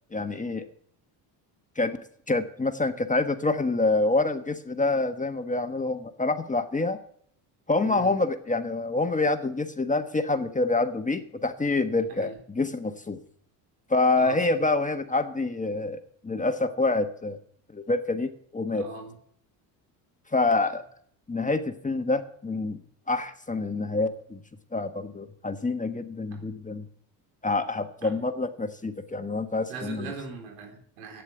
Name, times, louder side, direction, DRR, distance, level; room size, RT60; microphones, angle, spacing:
voice 1, 0.1-0.6 1.8-7.0 7.7-13.2 13.9-17.4 17.7-18.8 20.3-20.8 21.3-22.8 23.1-24.4 24.7-26.9 27.4-30.1, left 3 dB, 15° left, 7 dB, 1.3 m, -27 dB
voice 2, 7.8-8.1 12.1-12.4 14.2-14.6 18.7-19.1 26.3-26.5 28.0-28.1 29.7-31.2, right 5 dB, 85° right, 2 dB, 4.0 m, -40 dB
11.5 x 9.4 x 8.1 m, 0.62 s
supercardioid pair, 75°, 48 cm